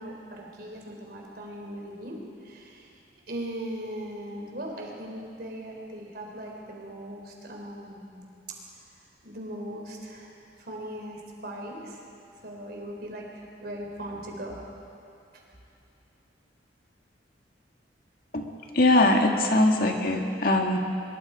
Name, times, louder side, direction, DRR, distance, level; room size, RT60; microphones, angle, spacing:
voice 1, 0.0-2.9 3.3-8.2 9.2-10.3 10.6-12.0 12.4-14.6 15.3-15.4, right 1 dB, 60° right, 0 dB, 3.9 m, -39 dB
voice 2, 18.7-20.8, left 2 dB, 55° left, 2 dB, 1.9 m, -21 dB
23.5 x 22.0 x 5.1 m, 2.7 s
head